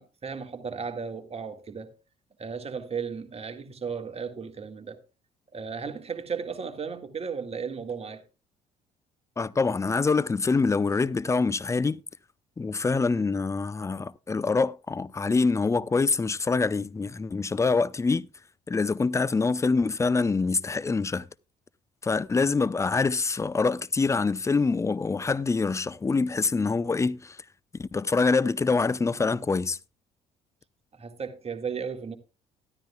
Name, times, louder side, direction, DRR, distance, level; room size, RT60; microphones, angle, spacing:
voice 1, 0.0-1.9 2.4-5.0 5.5-8.2 31.0-32.2, right 6 dB, 30° right, 1.8 m, -35 dB
voice 2, 9.4-12.0 12.6-18.3 18.7-21.3 22.0-27.4 27.8-29.8, left 4 dB, 15° left, 0.5 m, -25 dB
13.0 x 13.0 x 2.3 m
figure-of-eight pair, 50°, 19 cm